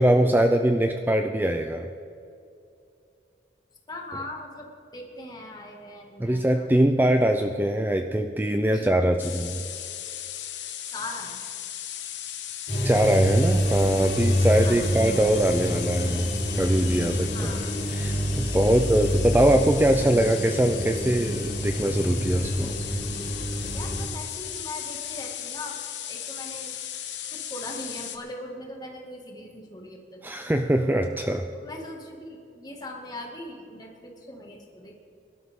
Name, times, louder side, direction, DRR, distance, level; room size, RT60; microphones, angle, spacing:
voice 1, 0.0-1.9 6.2-9.6 12.8-17.6 17.9-22.7 30.2-31.5, right 1 dB, 10° right, 6 dB, 0.4 m, -22 dB
voice 2, 3.9-6.7 8.7-8.9 10.9-11.4 14.6-14.9 17.3-17.7 18.6-18.9 23.7-25.8 26.1-26.8 27.3-30.2 31.5-34.9, left 1 dB, 25° left, 0 dB, 2.1 m, -40 dB
sound 1, 9.2-28.2, left 10 dB, 90° left, 1.2 m, -36 dB
sound 2, 12.7-24.1, equal, 60° left, 3.6 m, -27 dB
22.0 x 12.0 x 3.7 m, 2.6 s
head